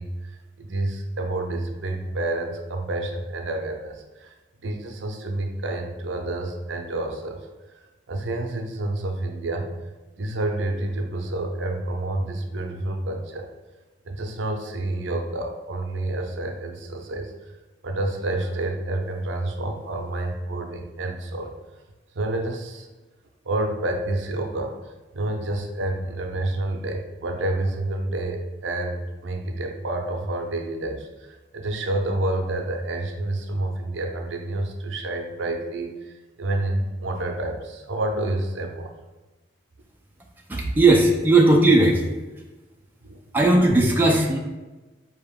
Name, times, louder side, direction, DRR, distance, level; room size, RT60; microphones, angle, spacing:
voice 1, 0.0-4.3 4.6-7.5 7.8-9.7 10.2-13.5 14.0-17.5 17.8-21.5 22.1-22.9 23.4-38.9 43.0-43.2, right 2 dB, 75° right, 4 dB, 0.6 m, -29 dB
voice 2, 40.5-42.0 43.3-44.4, right 2 dB, 10° right, -1 dB, 0.4 m, -17 dB
4.7 x 2.9 x 3.5 m, 1.2 s
head